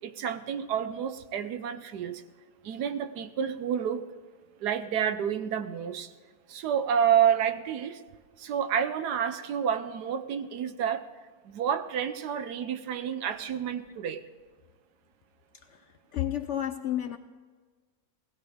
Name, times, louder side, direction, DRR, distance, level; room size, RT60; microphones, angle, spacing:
voice 1, 0.0-2.2 2.6-4.0 4.6-6.1 6.5-8.0 8.4-11.1 11.4-14.2, right 8 dB, 85° right, 10 dB, 1.4 m, -29 dB
voice 2, 16.1-17.2, left 11 dB, 70° left, 9 dB, 0.7 m, -30 dB
19.5 x 16.5 x 3.6 m, 1.5 s
omnidirectional pair, 1.7 m